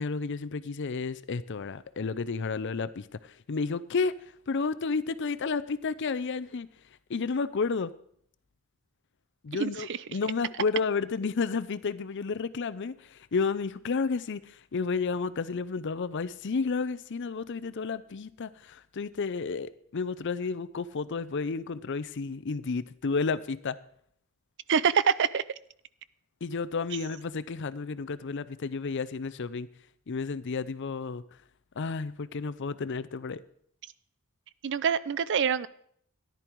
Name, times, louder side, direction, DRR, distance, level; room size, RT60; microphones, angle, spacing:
voice 1, 0.0-4.2 4.5-6.7 7.1-7.9 9.4-23.8 26.4-29.7 30.1-31.2 31.8-33.4, left 4 dB, 55° left, 0.5 m, -31 dB
voice 2, 9.5-10.0 24.7-25.4 34.6-35.7, right 7 dB, 55° right, 0.5 m, -26 dB
14.0 x 10.5 x 4.6 m
head